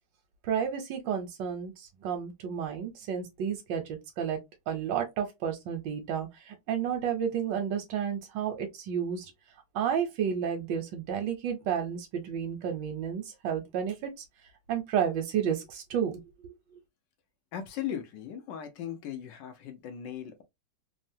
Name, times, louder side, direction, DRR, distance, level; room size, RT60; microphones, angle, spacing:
voice 1, 0.4-4.4 4.7-9.3 9.7-14.1 14.7-16.5, right 8 dB, 85° right, 1.4 m, -31 dB
voice 2, 17.5-20.4, left 9 dB, 90° left, 1.4 m, -38 dB
3.6 x 2.1 x 2.6 m
omnidirectional pair, 1.9 m